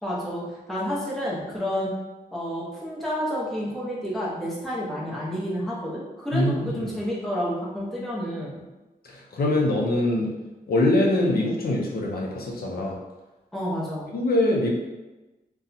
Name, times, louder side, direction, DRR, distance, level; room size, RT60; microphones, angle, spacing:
voice 1, 0.0-1.9 2.3-8.6 13.5-14.1, equal, ahead, -7 dB, 0.8 m, -30 dB
voice 2, 6.3-6.8 9.0-10.3 10.7-13.0 14.1-14.7, left 1 dB, 75° left, -2 dB, 0.6 m, -23 dB
2.7 x 2.3 x 3.8 m, 1.1 s
wide cardioid pair, 155°, 16 cm